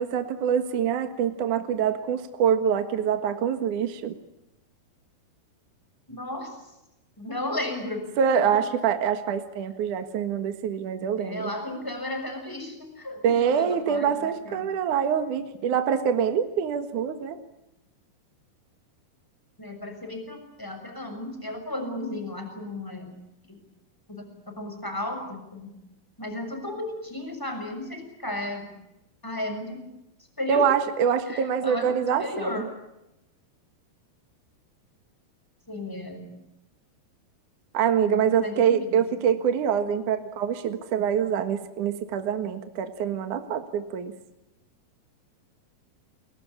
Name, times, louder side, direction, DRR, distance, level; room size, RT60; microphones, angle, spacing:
voice 1, 0.0-4.1 8.2-11.5 13.2-17.4 30.5-32.6 37.7-44.1, right 8 dB, 60° right, 8 dB, 2.9 m, -25 dB
voice 2, 6.1-6.6 7.2-8.1 8.4-8.6 11.2-14.7 19.6-23.1 23.5-23.6 24.1-25.7 26.2-28.7 29.2-29.9 30.4-30.7 31.3-32.7 35.7-36.4 38.0-39.3, left 1 dB, 5° left, 5 dB, 6.4 m, -34 dB
30.0 x 22.5 x 8.5 m, 0.90 s
omnidirectional pair, 4.4 m